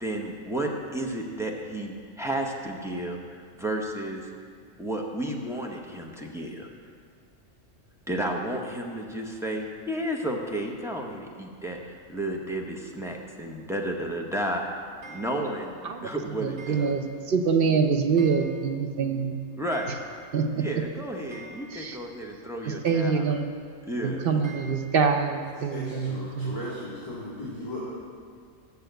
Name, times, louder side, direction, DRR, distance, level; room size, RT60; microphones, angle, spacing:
voice 1, 0.0-4.2 4.8-6.7 8.1-14.6 15.1-15.8 16.0-16.9 19.6-20.0 20.6-23.4 23.8-24.3, right 1 dB, 5° right, -1 dB, 0.7 m, -32 dB
Clock, 15.0-15.7 16.6-17.3 17.6-17.7 18.2-18.9 19.2-19.3 19.5-20.5 20.8-20.9 21.3-22.1 22.9-23.6 24.4-25.0, right 2 dB, 80° right, 1.9 m, -47 dB
voice 2, 16.4-19.4 20.3-20.4 21.7-22.0 22.6-23.5 24.0-26.6, right 5 dB, 55° right, 5 dB, 0.8 m, -25 dB
voice 3, 25.7-27.8, left 1 dB, 20° left, -13 dB, 2.5 m, -37 dB
7.1 x 7.0 x 7.9 m, 2.1 s
omnidirectional pair, 1.3 m